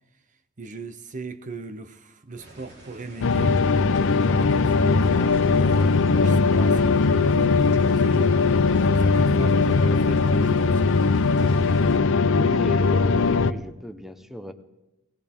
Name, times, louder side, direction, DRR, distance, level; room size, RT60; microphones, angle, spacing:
voice 1, 0.6-3.6 4.1-8.4 8.8-11.1, right 3 dB, 35° right, 0.6 m, -38 dB
sound 1, 2.4-12.0, right 1 dB, 55° right, 3.7 m, -47 dB
sound 2, 3.2-13.5, left 4 dB, 60° left, 0.5 m, -20 dB
voice 2, 12.3-14.5, equal, ahead, 0.8 m, -35 dB
19.5 x 18.0 x 3.6 m
head